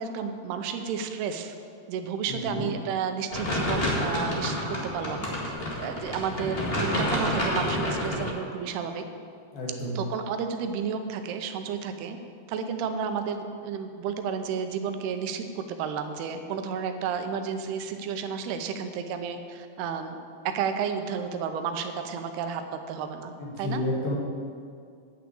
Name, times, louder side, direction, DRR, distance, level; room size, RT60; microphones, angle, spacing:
voice 1, 0.0-1.6 1.9-9.0 10.0-12.2 12.5-20.2 20.5-22.6 22.9-23.8, right 6 dB, 90° right, 7 dB, 2.8 m, -32 dB
voice 2, 2.3-2.6 9.5-10.0 23.4-24.1, left 1 dB, 75° left, -4 dB, 3.9 m, -31 dB
sound 1, 3.3-8.3, left 1 dB, 50° left, 0.7 m, -29 dB
9.9 x 6.0 x 8.6 m, 2.3 s
omnidirectional pair, 4.5 m